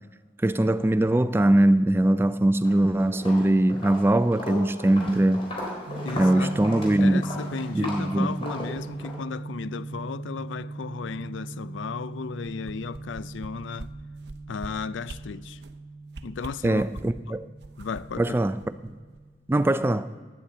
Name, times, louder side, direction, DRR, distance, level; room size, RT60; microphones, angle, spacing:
voice 1, 0.4-5.5 6.2-7.3 7.7-8.4 16.6-17.5 18.2-18.6 18.8-19.0 19.5-20.1, right 1 dB, 10° right, 0.3 m, -21 dB
Walk footsteps, 2.5-2.8 3.1-9.2, left 2 dB, 30° left, 3.7 m, -36 dB
sound 1, 5.9-19.3, right 3 dB, 90° right, 1.1 m, -39 dB
voice 2, 6.0-6.5 7.0-13.9 14.5-15.6 16.2-16.8 17.3-17.4 17.8-18.4, left 5 dB, 90° left, 0.4 m, -35 dB
sound 2, 12.4-13.5 13.8-13.9 14.2-14.7 15.0-15.2 15.6-15.8 16.1-17.2 17.6-19.2 19.5-19.6, right 2 dB, 65° right, 0.7 m, -42 dB
10.0 x 10.0 x 7.7 m
head